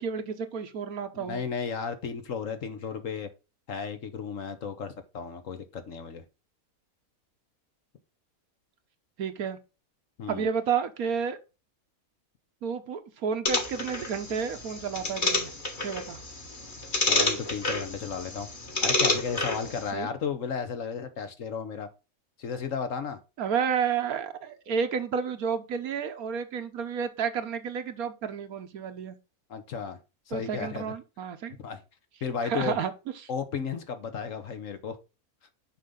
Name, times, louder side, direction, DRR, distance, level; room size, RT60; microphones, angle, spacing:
voice 1, 0.0-1.4 9.2-9.6 10.3-11.4 12.6-15.5 15.8-16.2 19.9-20.1 23.4-29.2 30.3-31.6 32.4-32.9 33.2-33.3, right 6 dB, 75° right, 1.5 m, -31 dB
voice 2, 1.1-3.3 3.7-6.2 10.2-10.5 17.1-18.5 18.8-21.9 22.4-23.2 29.5-30.0 30.3-30.9 31.6-31.8 32.2-32.8 33.3-35.0, left 6 dB, 60° left, 1.4 m, -34 dB
sound 1, 13.5-19.9, left 2 dB, 35° left, 1.7 m, -29 dB
6.6 x 5.6 x 3.7 m
omnidirectional pair, 1.5 m